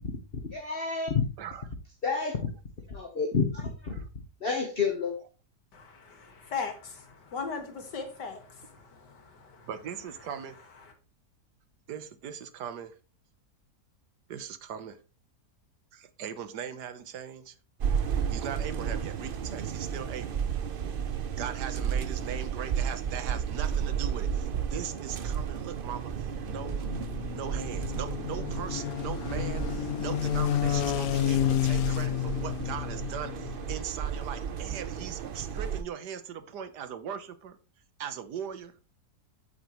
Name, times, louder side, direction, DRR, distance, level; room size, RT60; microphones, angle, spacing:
voice 1, 0.5-1.2 2.0-2.4 2.9-3.9 4.4-5.1, left 5 dB, 35° left, 1.4 m, -29 dB
voice 2, 1.4-1.7 3.9-4.1 9.7-10.6 11.9-13.0 14.3-15.0 15.9-17.5 18.3-20.4 21.4-26.9 27.3-37.6 38.0-38.7, right 8 dB, 75° right, 1.6 m, -39 dB
voice 3, 5.7-9.7, left 5 dB, 85° left, 2.5 m, -39 dB
sound 1, 17.8-35.8, right 7 dB, 55° right, 0.6 m, -33 dB
sound 2, 26.2-33.8, left 12 dB, 70° left, 1.1 m, -31 dB
8.4 x 8.1 x 3.1 m
omnidirectional pair, 1.8 m